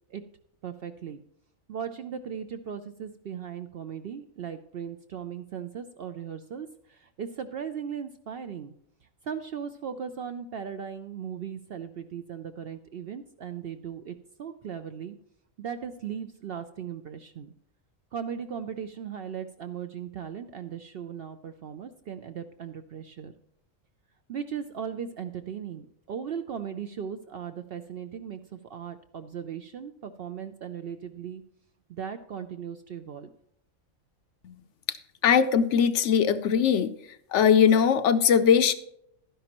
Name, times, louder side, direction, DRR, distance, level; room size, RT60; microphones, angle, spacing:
voice 1, 0.6-1.2 1.7-8.7 9.2-15.2 15.6-17.5 18.1-23.3 24.3-31.4 31.9-33.3, right 7 dB, 65° right, 8 dB, 0.6 m, -37 dB
voice 2, 35.2-36.9 37.3-38.7, left 7 dB, 70° left, 11 dB, 0.8 m, -20 dB
12.0 x 10.0 x 2.9 m, 0.75 s
omnidirectional pair, 1.4 m